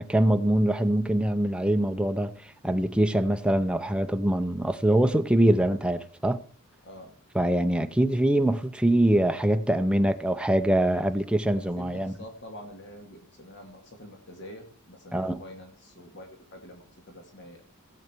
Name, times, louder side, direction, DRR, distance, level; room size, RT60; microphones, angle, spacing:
voice 1, 0.0-2.3 2.6-6.4 7.3-12.1 15.1-15.4, right 1 dB, 5° right, 0.8 m, -23 dB
voice 2, 11.5-17.6, equal, 55° left, 2.5 m, -46 dB
17.5 x 8.0 x 4.6 m
head